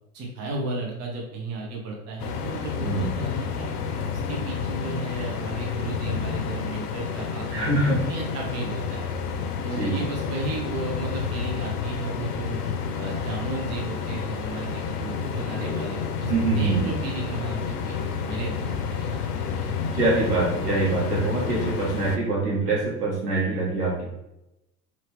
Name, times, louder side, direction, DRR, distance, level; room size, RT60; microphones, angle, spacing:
voice 1, 0.1-3.7 4.1-7.7 8.0-9.1 9.6-12.6 13.0-19.7, right 3 dB, 35° right, -1 dB, 0.9 m, -34 dB
sound 1, 2.2-22.2, left 6 dB, 80° left, 0.6 m, -30 dB
voice 2, 7.5-8.1 9.8-10.0 16.2-16.9 19.9-24.0, right 2 dB, 85° right, -4 dB, 1.3 m, -24 dB
2.9 x 2.7 x 3.4 m, 0.89 s
hypercardioid pair, 85°, 46 cm